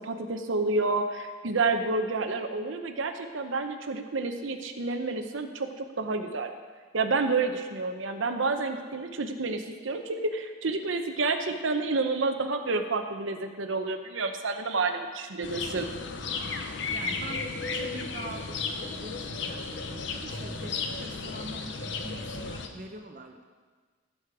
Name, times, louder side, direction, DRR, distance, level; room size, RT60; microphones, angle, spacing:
voice 1, 0.0-6.5 6.9-15.9, right 3 dB, 75° right, 6 dB, 0.8 m, -29 dB
sound 1, 15.4-22.7, left 4 dB, 65° left, 0.8 m, -34 dB
voice 2, 16.9-23.5, right 2 dB, 40° right, 4 dB, 0.7 m, -43 dB
15.5 x 6.4 x 4.9 m, 1.5 s
head